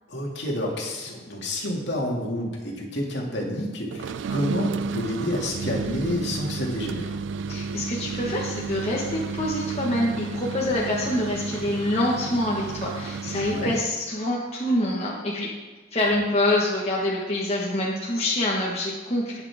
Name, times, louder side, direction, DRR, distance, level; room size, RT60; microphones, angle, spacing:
voice 1, 0.1-7.2 13.5-13.7, left 1 dB, 65° left, -2 dB, 2.4 m, -29 dB
sound 1, 3.9-13.9, right 5 dB, 70° right, 0.3 m, -32 dB
voice 2, 7.5-15.5 15.9-19.4, left 1 dB, 30° left, -4 dB, 1.4 m, -26 dB
19.5 x 6.5 x 3.6 m, 1.3 s
head